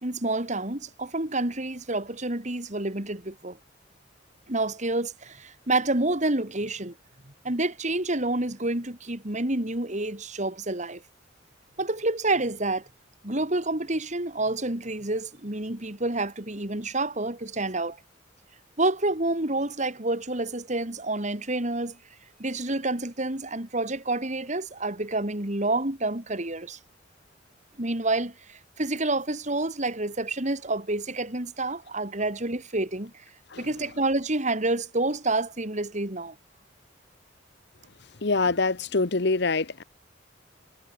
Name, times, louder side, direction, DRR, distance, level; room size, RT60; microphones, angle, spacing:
voice 1, 0.0-3.6 4.5-6.9 7.4-11.0 11.8-12.8 13.2-18.0 18.8-22.0 22.4-26.8 27.8-33.1 33.6-36.3, right 2 dB, 40° right, 3.0 m, -28 dB
voice 2, 38.2-39.8, left 3 dB, 60° left, 1.1 m, -25 dB
head